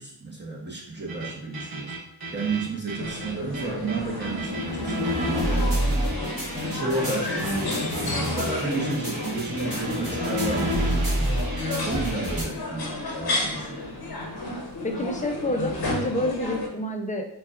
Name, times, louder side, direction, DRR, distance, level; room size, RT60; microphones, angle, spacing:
voice 1, 0.0-1.9 2.3-6.0 6.5-7.5 8.2-11.4 11.8-13.9, right 3 dB, 25° right, -4 dB, 0.9 m, -32 dB
sound 1, 1.1-12.4, equal, 55° right, 1.4 m, -29 dB
sound 2, 3.0-16.7, left 2 dB, 60° left, 0.9 m, -32 dB
voice 2, 14.8-17.3, left 1 dB, 20° left, 3 dB, 0.5 m, -28 dB
5.6 x 2.3 x 2.4 m, 0.71 s
wide cardioid pair, 70°, 42 cm